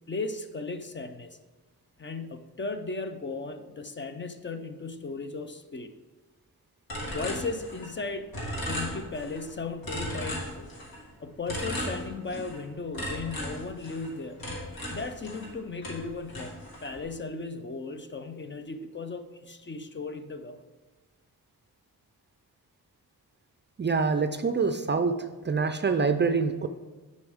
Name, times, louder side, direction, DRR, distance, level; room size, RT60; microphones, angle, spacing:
voice 1, 0.1-1.4 2.0-5.9 7.1-8.3 8.6-10.7 11.2-14.4 14.9-20.6, left 3 dB, 30° left, 9 dB, 0.5 m, -36 dB
sound 1, 6.9-8.0 8.3-9.4 9.8-11.0 11.5-12.6 12.9-15.5 15.8-17.0, equal, 75° left, 2.1 m, -36 dB
voice 2, 23.8-26.7, right 4 dB, 30° right, 8 dB, 0.4 m, -26 dB
10.5 x 5.3 x 3.6 m, 1.3 s
wide cardioid pair, 105°, 36 cm